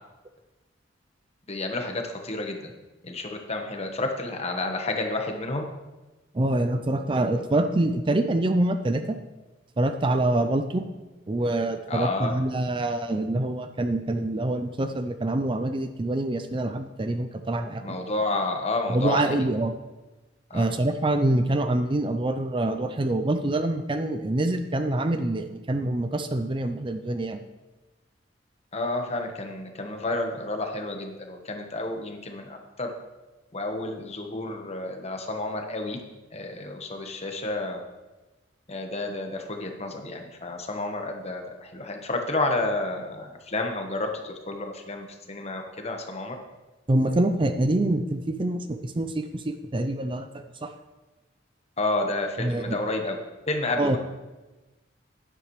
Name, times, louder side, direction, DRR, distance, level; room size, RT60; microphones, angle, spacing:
voice 1, 1.5-2.7 3.0-5.6 11.9-12.4 17.8-19.4 20.5-20.8 28.7-32.9 33.5-36.0 36.3-37.8 38.7-46.4 51.8-53.2 53.5-54.0, left 2 dB, 35° left, 3 dB, 1.2 m, -30 dB
voice 2, 6.3-9.2 9.8-10.8 11.3-17.8 18.9-19.7 20.5-27.4 46.9-50.7 52.4-52.8 53.8-54.0, right 1 dB, 25° right, 8 dB, 0.5 m, -25 dB
11.5 x 10.0 x 3.2 m, 1.1 s
head